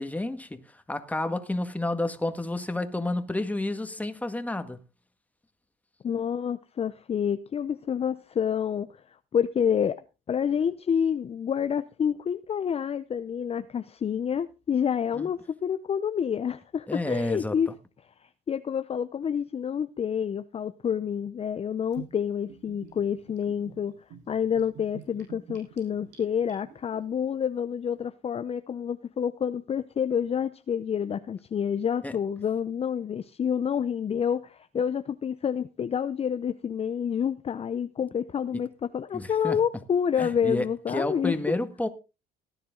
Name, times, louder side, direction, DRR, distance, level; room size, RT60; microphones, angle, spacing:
voice 1, 0.0-4.8 15.1-15.3 16.9-17.7 32.0-32.1 39.1-39.6 40.2-41.9, left 2 dB, 10° left, 1.8 m, -30 dB
voice 2, 6.0-17.7 18.5-23.9 24.3-38.7 38.9-41.4, left 8 dB, 35° left, 0.7 m, -28 dB
Gurgling / Bathtub (filling or washing), 21.9-27.0, right 8 dB, 85° right, 7.4 m, -48 dB
18.0 x 10.0 x 3.9 m
cardioid pair, 100°, 18 cm